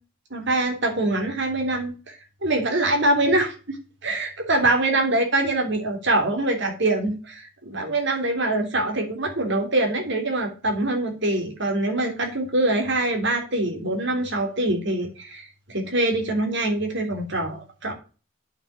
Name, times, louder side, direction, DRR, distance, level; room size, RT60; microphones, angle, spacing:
voice 1, 0.3-3.8 4.0-17.9, right 2 dB, 55° right, 3 dB, 3.2 m, -24 dB
8.7 x 5.7 x 7.0 m, 0.34 s
head